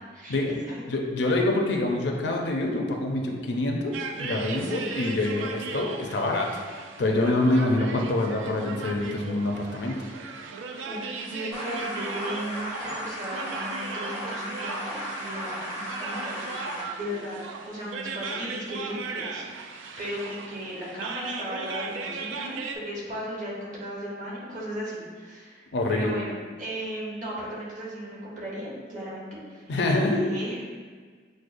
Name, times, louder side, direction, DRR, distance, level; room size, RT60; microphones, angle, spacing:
voice 1, 0.9-3.9 4.2-6.6 7.0-10.0 25.7-26.1 29.7-30.2, left 2 dB, 65° left, 1 dB, 0.4 m, -26 dB
sound 1, 3.9-22.8, right 4 dB, 85° right, 0.3 m, -37 dB
voice 2, 10.8-16.7 17.0-17.4 17.7-22.6 22.8-25.6 25.9-30.6, equal, 40° right, -6 dB, 1.0 m, -36 dB
sound 2, 11.5-16.8, equal, 10° right, 0.6 m, -35 dB
6.2 x 2.1 x 2.5 m, 1.5 s
head